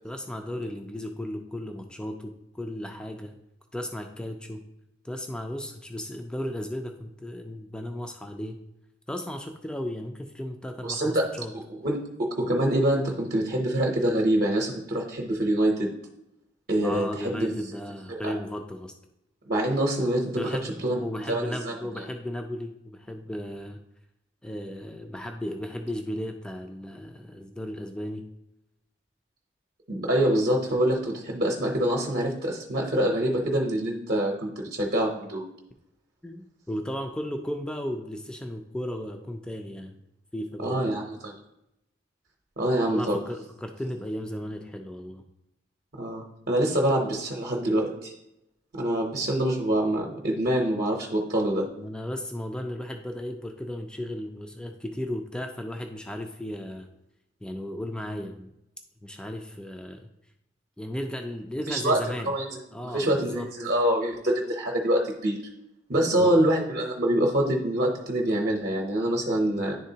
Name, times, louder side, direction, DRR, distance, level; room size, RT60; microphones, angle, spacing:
voice 1, 0.0-3.4 3.7-4.6 5.0-8.6 9.1-11.5 16.8-18.9 20.4-23.8 24.4-28.2 36.2-40.0 40.3-41.1 42.9-45.2 51.8-56.9 57.4-58.5 59.0-60.1 60.8-62.3 62.7-63.5 66.0-66.3 69.4-69.7, left 1 dB, 5° left, 3 dB, 0.4 m, -35 dB
voice 2, 10.8-11.3 11.5-15.9 16.7-17.5 18.1-18.3 19.4-20.5 20.8-21.7 29.9-35.4 40.6-41.3 42.6-43.2 46.0-48.1 48.7-51.6 61.7-62.6 62.9-65.4 65.9-69.7, right 1 dB, 50° right, -1 dB, 0.8 m, -25 dB
10.5 x 3.7 x 2.8 m, 0.85 s
head